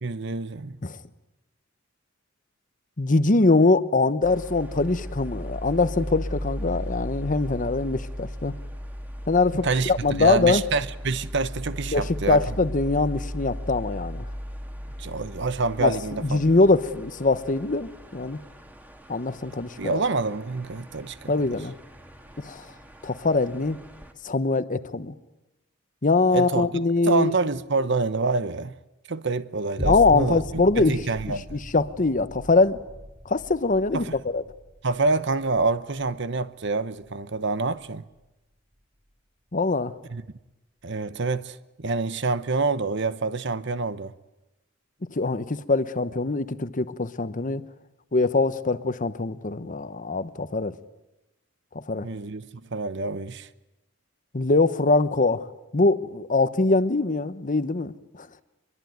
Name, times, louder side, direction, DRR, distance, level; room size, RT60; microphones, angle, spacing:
voice 1, 0.0-0.8 9.6-9.9 10.2-12.5 15.0-16.4 19.8-21.3 26.3-26.7 27.1-28.7 29.1-31.6 33.9-34.2 34.8-38.0 40.1-40.2 40.8-44.1 52.0-53.5, right 3 dB, 65° right, 1.0 m, -27 dB
voice 2, 3.0-8.5 9.3-10.6 11.9-14.3 15.8-18.4 19.1-20.0 21.3-21.7 22.4-22.6 23.0-23.8 24.2-25.1 26.0-27.3 29.8-31.0 31.5-32.8 33.2-34.4 39.5-39.9 45.1-47.6 48.1-50.7 51.7-52.1 54.3-55.5 55.7-58.3, left 3 dB, 40° left, 1.0 m, -23 dB
sound 1, 4.2-24.1, equal, 10° right, 2.0 m, -37 dB
sound 2, 29.8-38.3 38.8-38.9, equal, 45° right, 7.2 m, -39 dB
24.0 x 22.0 x 9.4 m
head